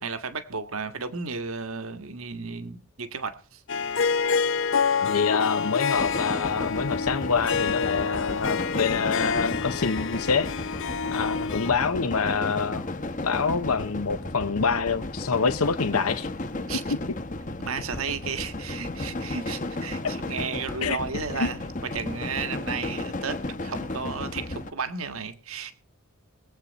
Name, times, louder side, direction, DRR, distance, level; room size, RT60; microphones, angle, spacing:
voice 1, 0.0-3.6 16.7-16.8 17.6-25.7, right 5 dB, 75° right, 1.5 m, -33 dB
Harp, 3.7-11.7, left 5 dB, 60° left, 0.6 m, -27 dB
voice 2, 5.0-10.5 11.1-12.9 13.2-16.6 20.8-21.0 21.4-21.5, left 5 dB, 85° left, 0.8 m, -26 dB
sound 1, 5.9-24.7, left 2 dB, 35° left, 1.1 m, -34 dB
22.0 x 8.4 x 4.1 m
head